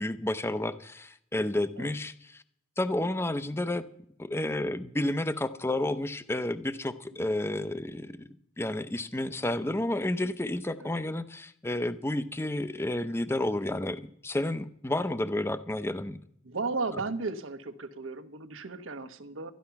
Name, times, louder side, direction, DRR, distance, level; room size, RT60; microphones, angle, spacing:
voice 1, 0.0-2.4 2.8-3.8 4.2-8.3 8.6-16.2, left 1 dB, 15° left, 13 dB, 0.6 m, -31 dB
voice 2, 16.4-19.5, right 3 dB, 90° right, 9 dB, 1.1 m, -35 dB
13.0 x 11.5 x 5.8 m, 0.67 s
head